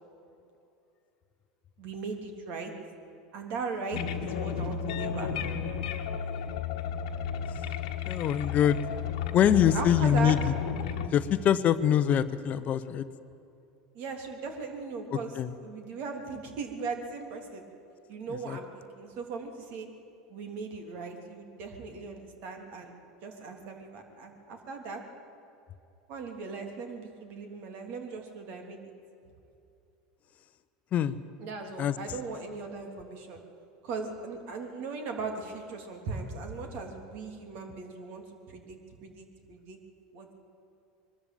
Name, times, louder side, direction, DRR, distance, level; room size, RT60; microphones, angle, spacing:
voice 1, 1.8-2.7 3.3-5.3 9.7-10.4 13.9-15.3 15.6-17.6 18.1-19.9 20.3-22.9 23.2-25.0 26.1-28.8 31.4-33.4 33.8-39.8 40.1-40.3, right 4 dB, 55° right, 4 dB, 3.2 m, -38 dB
sound 1, 3.9-11.1, left 7 dB, 75° left, 1.4 m, -33 dB
voice 2, 8.0-8.8 9.3-10.5 11.1-13.0 15.4-15.5 18.5-18.6 30.9-31.2 31.8-31.9, left 9 dB, 40° left, 13 dB, 0.8 m, -24 dB
22.0 x 13.0 x 9.1 m, 2.6 s
hypercardioid pair, 95°, 4 cm